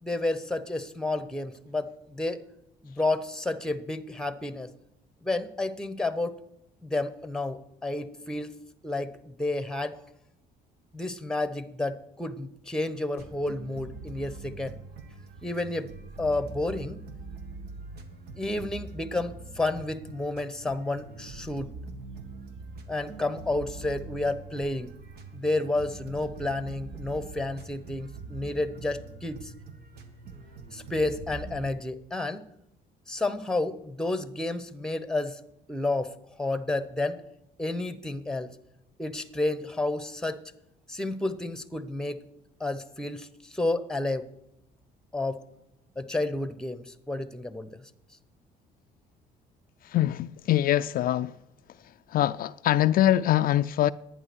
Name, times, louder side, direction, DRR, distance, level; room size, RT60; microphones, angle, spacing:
voice 1, 0.0-2.4 2.8-4.7 5.2-6.4 6.8-8.6 8.8-10.0 10.9-14.8 15.4-15.9 16.2-17.0 18.3-21.7 22.9-24.9 25.3-29.5 30.7-32.4 33.1-35.4 35.7-36.1 36.4-37.2 37.6-38.6 39.0-40.4 40.9-42.2 42.6-44.3 45.1-45.4 46.0-47.8, left 2 dB, 5° left, 1.0 m, -31 dB
sound 1, 13.2-31.7, right 3 dB, 70° right, 1.9 m, -43 dB
voice 2, 49.8-51.3 52.1-53.9, left 13 dB, 60° left, 0.4 m, -23 dB
11.0 x 9.6 x 6.2 m
cardioid pair, 110°, 17 cm